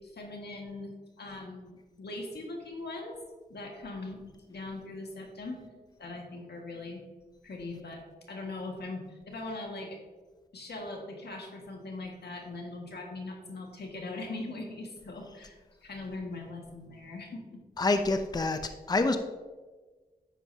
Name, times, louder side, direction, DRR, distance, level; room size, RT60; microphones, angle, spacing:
voice 1, 0.0-3.2 3.5-5.6 6.0-7.0 7.4-8.0 8.3-10.0 10.5-17.6, left 2 dB, 80° left, 1 dB, 1.7 m, -41 dB
voice 2, 17.8-18.6 18.9-19.2, left 3 dB, 25° left, 8 dB, 0.5 m, -26 dB
10.0 x 8.5 x 2.8 m, 1.3 s
cardioid pair, 60°, 17 cm